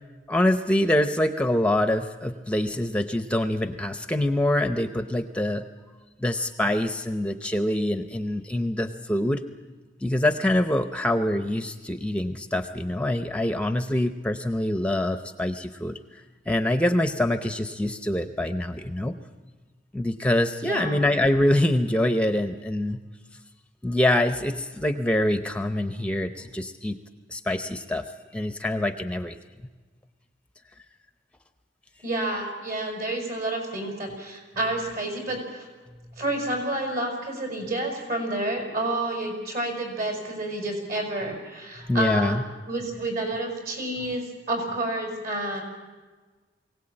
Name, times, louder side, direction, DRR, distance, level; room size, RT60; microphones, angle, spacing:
voice 1, 0.3-5.6 6.2-9.4 10.0-16.0 16.5-19.1 19.9-23.0 23.8-27.0 27.3-28.0 28.3-29.4 41.8-42.4, left 1 dB, 5° left, 9 dB, 0.7 m, -25 dB
voice 2, 20.6-21.0 32.0-35.7 36.2-42.4 42.7-45.6, right 1 dB, 55° right, 3 dB, 5.9 m, -29 dB
23.0 x 17.0 x 8.8 m, 1.4 s
head